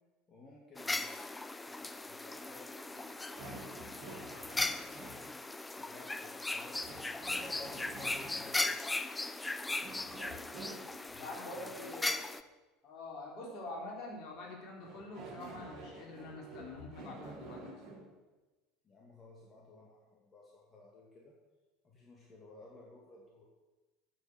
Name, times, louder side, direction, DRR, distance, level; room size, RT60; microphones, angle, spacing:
voice 1, 0.3-3.6 3.9-5.3 5.7-7.7 8.3-10.4 11.1-11.9 18.8-21.4 21.8-23.4, left 2 dB, 30° left, -3 dB, 2.5 m, -57 dB
sound 1, 0.8-12.4, left 2 dB, 15° left, 0.6 m, -38 dB
sound 2, 3.4-5.2 6.8-8.5 9.8-11.1 14.8-18.1, right 2 dB, 50° right, 4.3 m, -49 dB
voice 2, 11.2-12.2 12.8-17.8, left 2 dB, 50° left, -1 dB, 3.9 m, -45 dB
10.5 x 7.2 x 8.4 m, 1.2 s
figure-of-eight pair, 70°, 0 cm